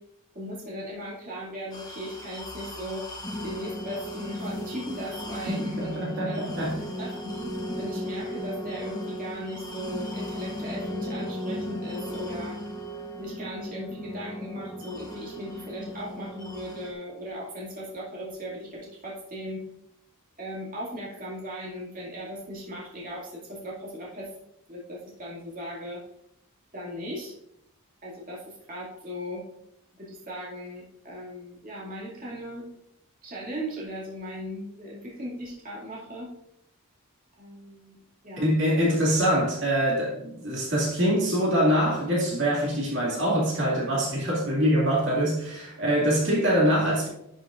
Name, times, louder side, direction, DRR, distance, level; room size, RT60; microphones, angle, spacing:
voice 1, 0.3-3.1 3.4-6.7 7.0-7.5 7.8-12.6 13.2-19.6 20.4-24.3 24.7-26.0 26.7-27.3 28.0-29.4 30.0-32.6 33.2-36.3 37.4-38.0 38.2-38.5, equal, 40° right, 2.3 m, -38 dB
sound 1, 1.7-16.9, left 1 dB, 20° left, 1.1 m, -36 dB
voice 2, 5.5-6.8 38.4-47.1, equal, 55° right, 2.2 m, -24 dB
11.0 x 6.7 x 2.5 m
head